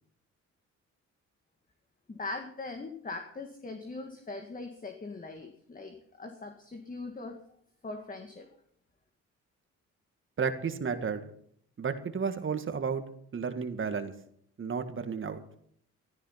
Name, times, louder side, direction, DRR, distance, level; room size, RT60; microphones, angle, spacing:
voice 1, 2.1-7.4 7.8-8.5, left 3 dB, 30° left, 5 dB, 1.9 m, -41 dB
voice 2, 10.4-11.3 11.8-13.0 13.3-14.1 14.6-15.4, right 6 dB, 40° right, 9 dB, 1.9 m, -32 dB
14.0 x 13.5 x 5.8 m, 0.65 s
cardioid pair, 90°, 30 cm